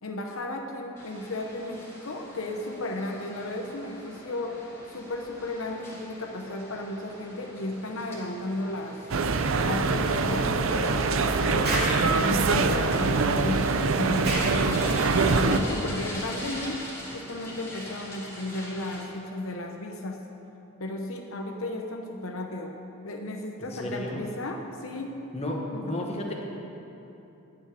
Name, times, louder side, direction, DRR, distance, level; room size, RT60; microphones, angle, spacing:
voice 1, 0.0-9.0 9.6-16.8 17.1-20.3 20.8-22.7 23.0-25.2 25.7-26.1, left 1 dB, 70° left, 2 dB, 0.9 m, -34 dB
sound 1, 1.0-19.0, left 1 dB, 10° left, 2.1 m, -43 dB
sound 2, 9.1-15.6, right 4 dB, 70° right, 0.6 m, -24 dB
Explosion, 11.6-12.0 14.2-14.5, right 1 dB, 45° right, 2.7 m, -28 dB
voice 2, 23.6-24.2 25.3-26.4, left 1 dB, 30° left, 0 dB, 1.3 m, -33 dB
10.0 x 7.1 x 9.1 m, 2.9 s
head